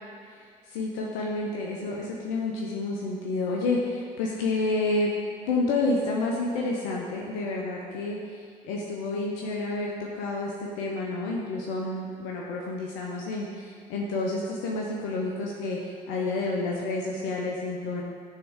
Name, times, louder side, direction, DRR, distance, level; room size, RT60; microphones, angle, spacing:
voice 1, 0.3-5.1 5.4-18.0, left 2 dB, 70° left, -2 dB, 0.7 m, -30 dB
9.7 x 3.6 x 3.6 m, 2.1 s
hypercardioid pair, 55°, 20 cm